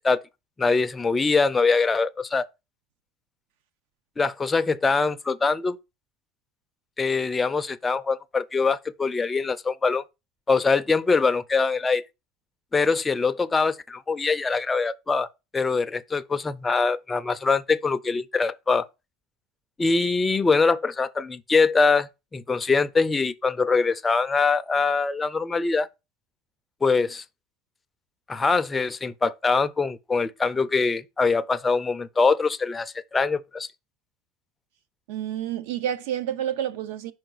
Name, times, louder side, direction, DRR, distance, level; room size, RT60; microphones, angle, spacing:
voice 1, 0.6-2.5 4.2-5.8 7.0-10.0 10.5-12.0 12.7-15.3 15.5-18.9 19.8-25.9 26.8-27.2 28.3-33.7, left 4 dB, 15° left, 0.4 m, -23 dB
voice 2, 35.1-37.1, right 10 dB, 80° right, 0.6 m, -29 dB
5.7 x 4.7 x 3.9 m
supercardioid pair, 145°, 0 cm